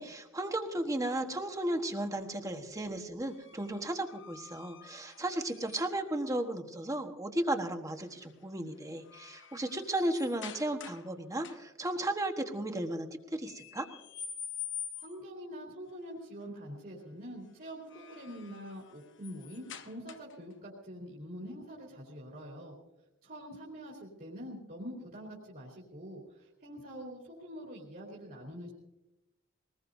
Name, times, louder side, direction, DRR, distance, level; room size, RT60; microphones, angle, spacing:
voice 1, 0.0-13.8, right 1 dB, 15° right, 5 dB, 1.3 m, -35 dB
sound 1, 3.3-6.2 7.9-8.3 8.7-11.1 11.4-11.9 13.4-15.3 17.6-20.5, left 8 dB, 65° left, 0.9 m, -47 dB
voice 2, 15.0-22.8 23.2-28.7, equal, 50° right, -4 dB, 3.1 m, -45 dB
22.5 x 19.5 x 2.7 m, 0.93 s
head